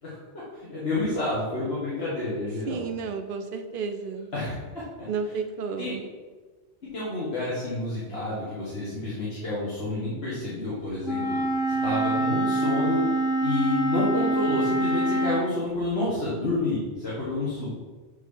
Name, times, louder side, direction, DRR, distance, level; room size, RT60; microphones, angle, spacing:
voice 1, 0.0-2.8 4.3-5.1 5.8-5.9 6.9-11.4 11.7-13.0 13.4-17.7, left 2 dB, 60° left, -8 dB, 1.8 m, -29 dB
voice 2, 2.7-4.3 5.1-6.1, right 5 dB, 55° right, 7 dB, 0.8 m, -32 dB
Wind instrument woodwind instrument, 11.0-15.5, right 2 dB, 5° right, 0.5 m, -25 dB
7.5 x 3.6 x 5.5 m, 1.4 s
omnidirectional pair, 1.2 m